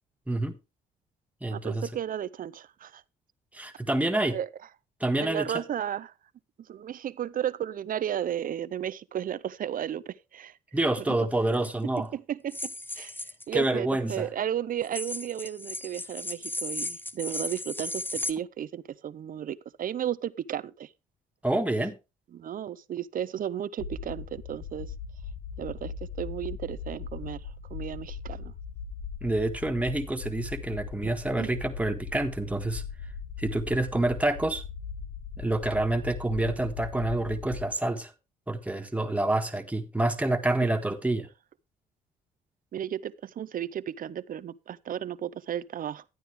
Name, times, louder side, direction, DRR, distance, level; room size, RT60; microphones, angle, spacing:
voice 1, 0.3-0.6 1.4-1.9 3.5-4.4 5.0-5.5 10.7-12.1 13.5-14.3 21.4-22.0 29.2-32.8 33.4-34.6 35.4-38.1 38.5-41.3, right 2 dB, 10° right, 1.5 m, -27 dB
voice 2, 1.5-3.0 4.2-4.5 5.2-6.1 6.6-10.6 11.1-11.2 11.8-13.2 13.5-20.9 22.3-24.9 25.6-28.5 31.4-31.5 42.7-46.0, right 10 dB, 50° right, 0.6 m, -34 dB
sound 1, 11.5-11.7 12.5-13.4 14.8-18.3, left 2 dB, 10° left, 0.7 m, -35 dB
sound 2, 23.8-37.7, left 6 dB, 65° left, 1.4 m, -39 dB
12.0 x 9.2 x 3.4 m
supercardioid pair, 60°, 18 cm